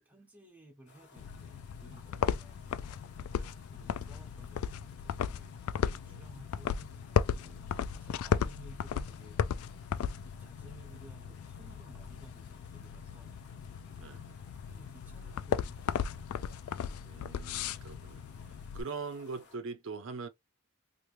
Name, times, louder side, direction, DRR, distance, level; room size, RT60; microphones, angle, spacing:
voice 1, 0.0-2.6 3.1-3.3 3.7-7.2 7.9-9.4 10.0-13.4 14.4-15.8 16.1-16.3, right 1 dB, 5° right, 0.9 m, -57 dB
sound 1, 0.9-19.6, left 4 dB, 55° left, 1.1 m, -60 dB
sound 2, 1.2-18.8, left 7 dB, 80° left, 0.3 m, -36 dB
voice 2, 5.8-6.2 7.4-7.7 10.1-10.3 13.9-14.2 17.0-20.3, right 4 dB, 60° right, 0.5 m, -43 dB
2.9 x 2.5 x 3.1 m
head